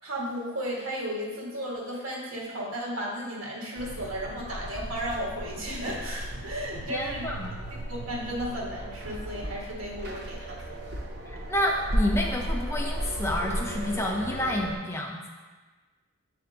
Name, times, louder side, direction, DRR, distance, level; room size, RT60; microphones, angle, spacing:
voice 1, 0.0-7.3 7.9-10.8, equal, 80° right, -3 dB, 1.5 m, -34 dB
sound 1, 3.8-14.8, equal, 50° right, 0.7 m, -35 dB
voice 2, 6.9-7.5 11.3-15.2, left 1 dB, 10° left, 0 dB, 0.4 m, -29 dB
7.5 x 3.4 x 3.8 m, 1.3 s
head